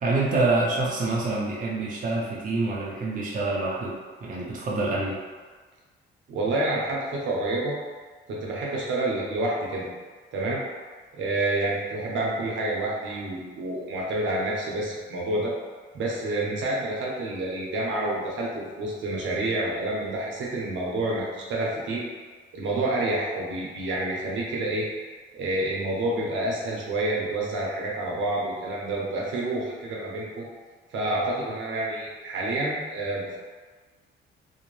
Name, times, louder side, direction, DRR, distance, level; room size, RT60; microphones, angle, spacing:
voice 1, 0.0-3.9 4.2-5.2, right 2 dB, 40° right, -5 dB, 0.6 m, -26 dB
voice 2, 6.3-7.7 8.3-9.9 10.3-10.6 11.1-15.5 15.9-22.1 22.5-24.9 25.3-30.5 30.9-33.4, right 2 dB, 75° right, -4 dB, 0.7 m, -28 dB
2.6 x 2.1 x 3.1 m, 1.4 s
cardioid pair, 90°, 20 cm